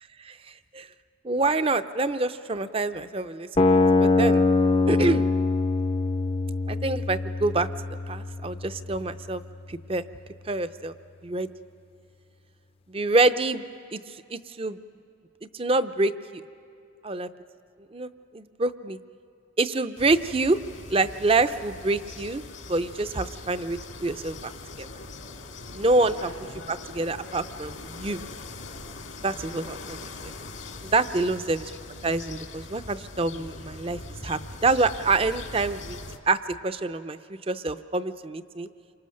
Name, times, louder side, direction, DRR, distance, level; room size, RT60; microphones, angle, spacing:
voice 1, 1.2-4.4 4.9-5.2 6.7-7.7 8.1-9.4 9.7-10.0 10.5-10.9 11.2-11.5 12.9-13.7 13.9-14.8 15.5-16.1 17.0-17.3 17.9-19.0 19.6-20.6 20.9-22.4 22.7-24.5 24.8-24.9 25.7-26.3 26.7-28.2 29.2-30.3 30.8-31.7 32.0-36.0 36.3-37.2 37.5-38.7, right 3 dB, 30° right, 12 dB, 0.6 m, -26 dB
sound 1, 3.6-9.6, left 3 dB, 30° left, 0.5 m, -24 dB
sound 2, 20.0-36.2, left 3 dB, 75° left, 1.9 m, -41 dB
28.5 x 24.5 x 6.5 m, 2.6 s
head